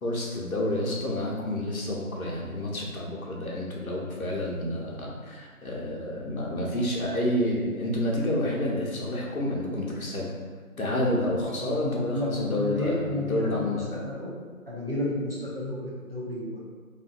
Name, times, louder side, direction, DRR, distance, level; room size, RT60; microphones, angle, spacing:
voice 1, 0.0-10.3 10.8-13.8, left 1 dB, 75° left, -3 dB, 0.8 m, -29 dB
voice 2, 11.4-14.3 14.7-16.6, left 1 dB, 45° right, -6 dB, 0.6 m, -32 dB
2.8 x 2.5 x 2.5 m, 1.5 s
figure-of-eight pair, 175°, 43 cm